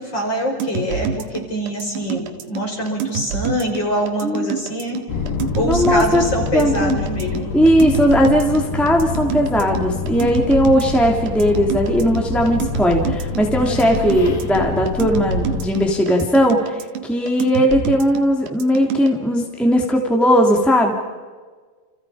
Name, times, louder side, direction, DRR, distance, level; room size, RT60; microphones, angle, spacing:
voice 1, 0.0-5.0 5.5-7.5 13.7-13.9, equal, 25° left, 1 dB, 5.7 m, -24 dB
sound 1, 0.6-19.1, right 7 dB, 70° right, 3.5 m, -27 dB
voice 2, 4.2-4.6 5.6-6.2 6.5-6.9 7.5-20.9, equal, ahead, 1 dB, 1.4 m, -17 dB
sound 2, 5.1-15.7, left 4 dB, 65° left, 5.1 m, -27 dB
30.0 x 30.0 x 5.0 m, 1.4 s
omnidirectional pair, 5.2 m